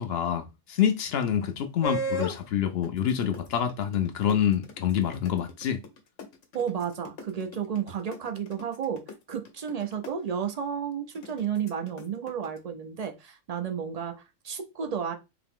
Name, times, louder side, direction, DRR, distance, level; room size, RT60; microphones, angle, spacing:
voice 1, 0.0-5.8, left 9 dB, 65° left, 0.7 m, -27 dB
sound 1, 1.8-2.4 2.8-10.1 11.1-12.6, equal, 85° left, 1.1 m, -36 dB
voice 2, 6.5-15.1, right 7 dB, 55° right, 0.4 m, -32 dB
3.9 x 2.8 x 3.5 m
omnidirectional pair, 1.2 m